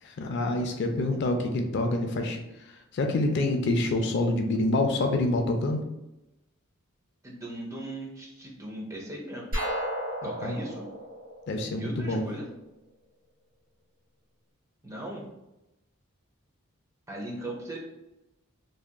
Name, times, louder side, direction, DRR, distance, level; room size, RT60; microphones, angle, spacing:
voice 1, 0.0-2.4 2.9-5.8 10.2-10.6 11.5-12.2, left 2 dB, 50° left, 4 dB, 0.3 m, -27 dB
voice 2, 7.2-9.5 10.2-10.9 11.7-12.5 14.8-15.3 17.1-17.8, right 1 dB, 15° right, -2 dB, 0.5 m, -38 dB
sound 1, 9.5-12.3, equal, 85° right, 1.3 m, -33 dB
2.7 x 2.4 x 2.2 m, 0.92 s
head